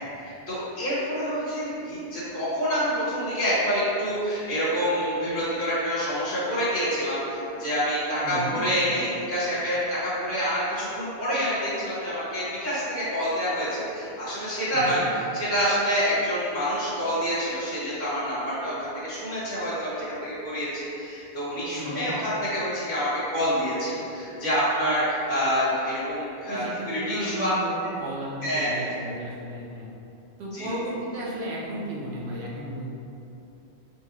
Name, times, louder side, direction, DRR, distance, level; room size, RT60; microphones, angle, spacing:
voice 1, 0.0-15.0 15.3-27.5 28.4-28.9 30.5-30.7, equal, 20° left, -12 dB, 1.1 m, -27 dB
voice 2, 8.2-8.6 14.7-15.1 21.7-22.1 26.5-29.9 30.4-33.0, right 1 dB, 80° right, -5 dB, 0.9 m, -34 dB
3.9 x 3.4 x 3.0 m, 2.7 s
omnidirectional pair, 1.1 m